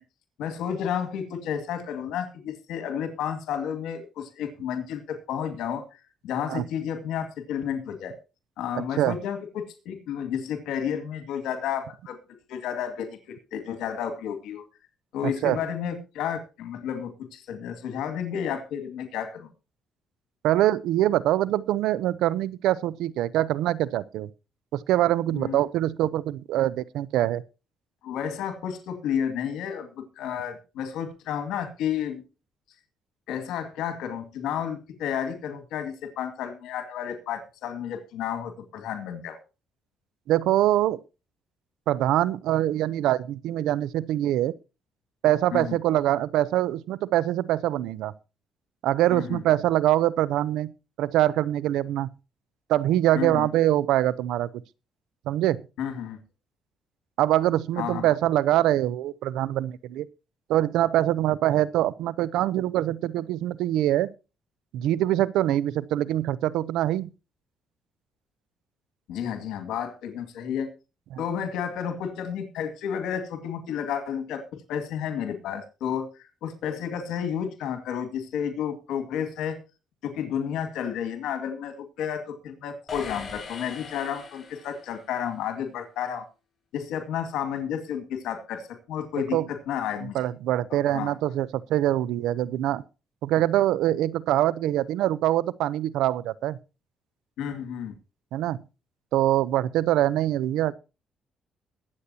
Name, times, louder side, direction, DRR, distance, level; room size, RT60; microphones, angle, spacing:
voice 1, 0.4-8.2 8.6-12.2 12.5-14.6 15.1-19.5 25.3-25.6 28.0-32.2 33.3-39.4 45.5-45.8 49.1-49.4 53.1-53.5 55.8-56.2 57.8-58.0 69.1-70.7 71.2-74.4 74.7-79.6 80.0-86.2 86.7-90.2 90.7-91.1 97.4-97.9, left 8 dB, 90° left, 2.1 m, -31 dB
voice 2, 8.8-9.2 15.2-15.6 20.4-24.3 24.7-27.4 40.3-41.0 41.9-44.5 45.2-48.1 48.8-50.7 51.0-52.1 52.7-54.5 55.3-55.6 57.2-60.1 60.5-64.1 64.7-67.1 71.1-71.2 89.3-89.5 90.1-92.8 93.2-96.6 98.3-98.6 99.1-100.7, right 13 dB, 90° right, 0.6 m, -24 dB
sound 1, 82.9-85.1, left 5 dB, 40° left, 5.2 m, -40 dB
22.5 x 8.3 x 2.8 m
cardioid pair, 90°, 0 cm